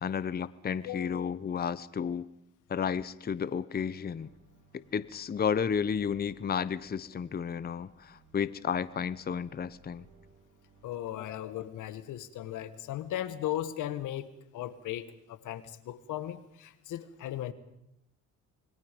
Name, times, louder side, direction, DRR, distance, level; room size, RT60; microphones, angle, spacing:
voice 1, 0.0-2.3 2.7-4.3 4.7-10.0 11.2-11.4, left 7 dB, 30° left, 17 dB, 0.7 m, -32 dB
voice 2, 0.8-1.3 10.8-17.5, left 12 dB, 85° left, 13 dB, 1.6 m, -37 dB
sound 1, 3.7-11.0, right 2 dB, 75° right, 5.6 m, -61 dB
26.5 x 22.5 x 5.3 m, 0.80 s
cardioid pair, 90°, 30 cm